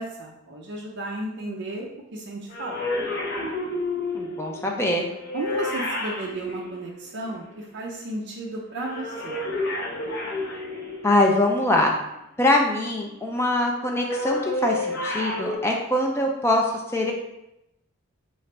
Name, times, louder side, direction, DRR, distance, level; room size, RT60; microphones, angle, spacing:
voice 1, 0.0-2.8 5.3-9.4, right 1 dB, 50° right, -2 dB, 0.4 m, -34 dB
sound 1, 2.5-7.5 8.7-11.3 13.7-15.6, left 2 dB, 50° left, 0.7 m, -30 dB
voice 2, 4.1-5.1 11.0-11.9 12.4-17.1, left 1 dB, 10° left, 0 dB, 0.4 m, -23 dB
3.2 x 2.4 x 4.3 m, 0.87 s
head